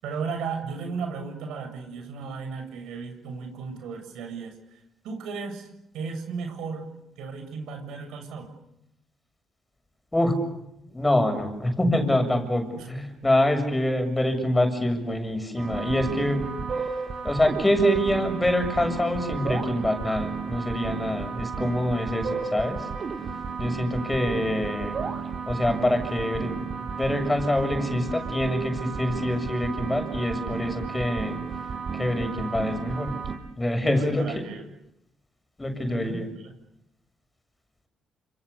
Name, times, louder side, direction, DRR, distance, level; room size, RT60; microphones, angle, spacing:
voice 1, 0.0-4.8 5.0-5.7 5.9-6.9 7.2-8.5 12.8-12.9 33.9-34.6 35.9-36.2 36.4-36.5, right 5 dB, 85° right, 6 dB, 7.4 m, -35 dB
voice 2, 10.9-16.5 17.2-22.9 23.6-25.0 25.5-26.7 27.0-31.4 31.9-33.1 33.6-34.4 35.6-36.3, left 1 dB, 15° left, 7 dB, 6.9 m, -25 dB
sound 1, 15.6-33.4, right 5 dB, 50° right, 6.2 m, -33 dB
30.0 x 28.0 x 7.0 m, 0.83 s
cardioid pair, 90°, 0 cm